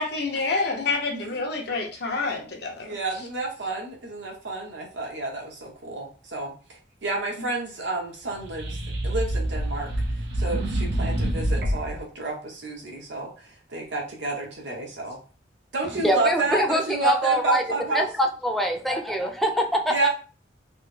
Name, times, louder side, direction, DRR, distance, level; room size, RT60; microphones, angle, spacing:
voice 1, 0.0-2.9, left 3 dB, 60° left, 1 dB, 0.9 m, -27 dB
voice 2, 2.8-8.8 9.0-9.9 10.3-15.2 15.7-18.1 19.9-20.1, right 3 dB, 90° right, 0 dB, 1.1 m, -30 dB
sound 1, 8.3-12.0, right 1 dB, 65° right, 0.7 m, -27 dB
voice 3, 16.0-17.6 17.9-20.1, equal, ahead, 3 dB, 0.4 m, -24 dB
3.2 x 2.1 x 3.2 m, 0.37 s
head